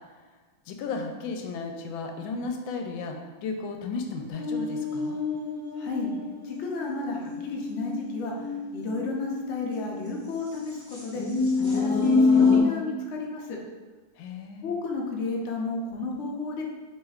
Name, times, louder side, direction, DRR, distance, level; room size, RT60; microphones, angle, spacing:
voice 1, 0.7-5.2 14.2-14.7, left 4 dB, 85° left, 4 dB, 1.3 m, -34 dB
sound 1, 4.3-10.1 10.7-12.6, left 4 dB, 15° left, 0.5 m, -26 dB
voice 2, 5.8-6.1 6.4-8.3 8.7-11.2 11.7-13.6 14.6-16.6, left 3 dB, 65° left, -1 dB, 0.7 m, -32 dB
6.1 x 3.3 x 2.4 m, 1.3 s
omnidirectional pair, 2.1 m